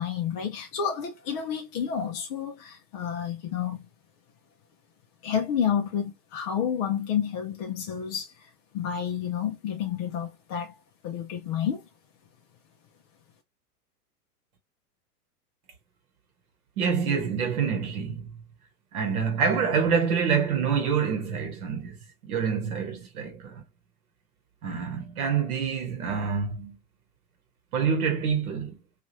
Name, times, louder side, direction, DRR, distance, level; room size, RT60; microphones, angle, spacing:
voice 1, 0.0-3.9 5.2-8.3 8.7-10.7 11.0-11.8, left 8 dB, 25° left, 0.3 m, -30 dB
voice 2, 16.8-18.3 18.9-22.0 22.2-23.6 24.6-26.8 27.7-28.8, right 6 dB, 60° right, 1.0 m, -26 dB
2.9 x 2.3 x 2.7 m
hypercardioid pair, 100°, 47 cm